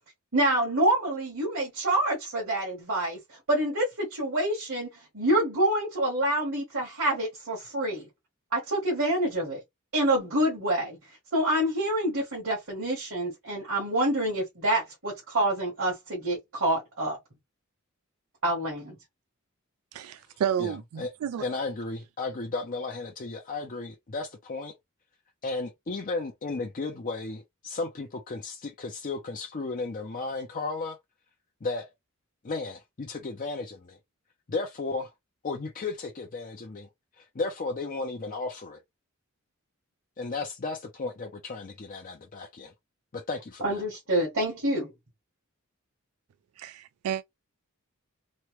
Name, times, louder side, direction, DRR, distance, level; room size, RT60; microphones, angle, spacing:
voice 1, 0.3-4.9 5.1-8.1 8.5-9.6 9.9-11.0 11.3-17.2 18.4-19.0 43.6-44.9, right 1 dB, 60° right, 1.2 m, -27 dB
voice 2, 19.9-21.4 46.6-47.2, right 9 dB, 75° right, 0.3 m, -31 dB
voice 3, 20.6-21.1 21.4-24.7 25.4-31.0 31.6-31.9 32.4-34.0 34.5-35.1 35.4-36.9 37.2-38.8 40.2-42.7 43.1-43.8, left 3 dB, 40° left, 0.5 m, -34 dB
3.1 x 2.2 x 3.0 m
head